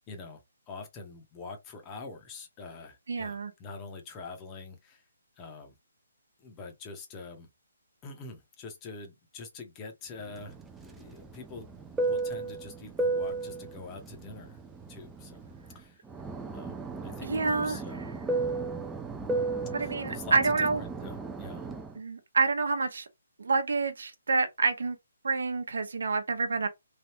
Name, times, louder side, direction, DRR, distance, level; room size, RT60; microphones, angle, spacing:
voice 1, 0.1-5.0 5.4-5.8 6.4-7.5 8.0-10.6 10.8-11.7 12.0-14.6 14.9-15.4 15.7-16.0 16.5-16.8 17.0-18.1 19.8-21.7, left 4 dB, 20° left, 0.8 m, -45 dB
voice 2, 3.1-3.5 17.2-17.8 19.7-20.8 22.0-23.1 23.4-25.0 25.2-26.7, right 4 dB, 75° right, 0.8 m, -28 dB
Fixed-wing aircraft airplane, 10.4-15.7 16.1-21.9, right 3 dB, 5° right, 0.4 m, -34 dB
3.3 x 2.4 x 2.8 m
hypercardioid pair, 160°, 0 cm